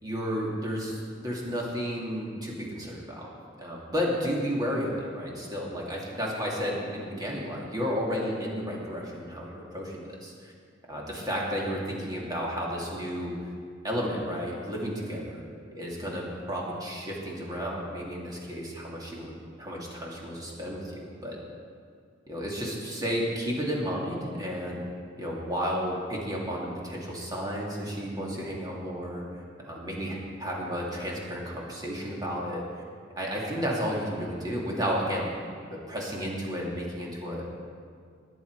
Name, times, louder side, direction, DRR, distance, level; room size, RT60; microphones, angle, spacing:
voice 1, 0.0-3.3 3.6-10.3 10.9-13.3 13.8-15.4 15.7-19.3 19.6-21.4 22.3-24.8 25.2-29.2 29.6-32.6 33.2-35.3 35.9-37.5, equal, 20° right, -3 dB, 2.4 m, -32 dB
20.0 x 8.5 x 4.7 m, 2.1 s
head